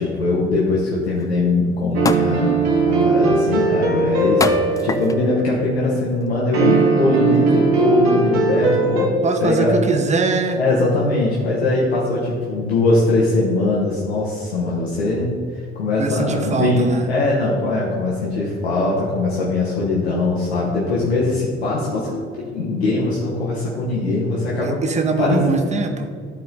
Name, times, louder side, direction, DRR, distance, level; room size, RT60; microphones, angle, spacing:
voice 1, 0.0-2.5 2.8-9.1 9.4-9.8 10.5-15.3 15.7-24.8 25.2-25.4, left 2 dB, 80° left, -5 dB, 1.1 m, -21 dB
sound 1, 1.2-1.3 2.1-2.4 3.0-3.4 4.4-5.3 6.0-6.2, left 4 dB, 10° left, 0.3 m, -24 dB
sound 2, 1.9-5.7 6.5-9.1, right 4 dB, 75° right, 1.1 m, -19 dB
voice 2, 9.2-10.6 16.0-17.1 24.6-26.1, right 4 dB, 20° right, 6 dB, 0.9 m, -21 dB
13.0 x 4.3 x 3.9 m, 2.2 s
figure-of-eight pair, 55°, 31 cm